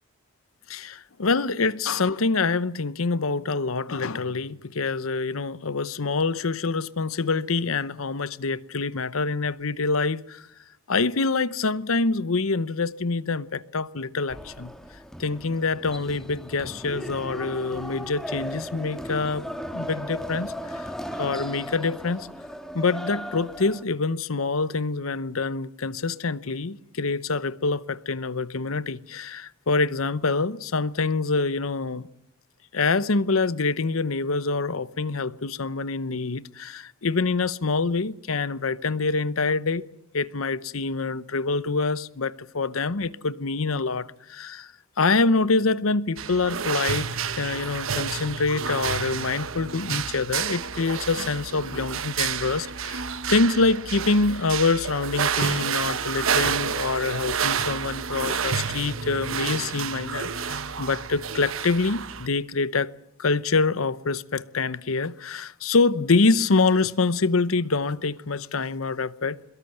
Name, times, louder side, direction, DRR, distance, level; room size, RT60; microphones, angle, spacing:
voice 1, 0.7-10.4 10.9-14.7 15.2-19.5 19.7-20.9 21.2-22.3 22.7-32.0 32.7-39.8 40.1-44.7 45.0-47.1 47.3-62.9 63.2-69.5, left 3 dB, 80° left, 0.9 m, -25 dB
sound 1, 14.3-23.8, equal, ahead, 1.6 m, -36 dB
sound 2, 46.2-62.3, right 7 dB, 70° right, 1.1 m, -29 dB
23.0 x 22.0 x 8.0 m
head